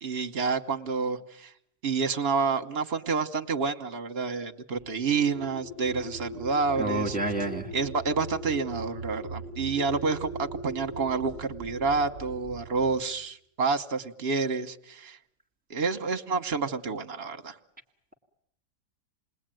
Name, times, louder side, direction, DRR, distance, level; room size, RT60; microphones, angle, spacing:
voice 1, 0.0-1.5 1.8-7.2 7.7-15.2 15.7-17.6, right 4 dB, 40° right, 6 dB, 1.3 m, -29 dB
sound 1, 4.7-13.0, right 1 dB, 35° left, 4.8 m, -40 dB
voice 2, 6.8-7.7, right 2 dB, 5° right, 2 dB, 2.2 m, -29 dB
28.0 x 20.0 x 9.1 m, 0.73 s
omnidirectional pair, 1.8 m